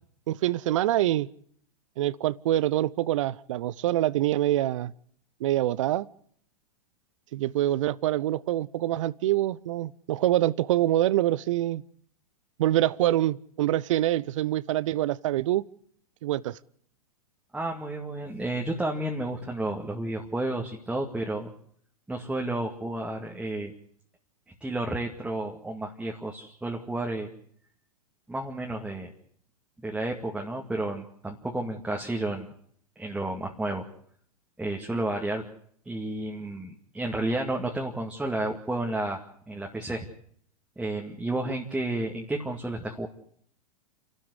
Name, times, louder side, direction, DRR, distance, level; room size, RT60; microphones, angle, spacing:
voice 1, 0.3-1.3 2.0-4.9 5.4-6.1 7.3-11.8 12.6-15.6 16.2-16.6, right 14 dB, 60° right, 22 dB, 0.8 m, -25 dB
voice 2, 17.5-21.5 22.1-23.7 24.6-27.3 28.3-29.1 29.8-32.5 33.0-33.9 34.6-35.4 35.9-40.1 40.8-43.1, right 2 dB, 5° right, 0 dB, 2.2 m, -31 dB
29.0 x 12.5 x 8.2 m, 0.63 s
figure-of-eight pair, 100°, 19 cm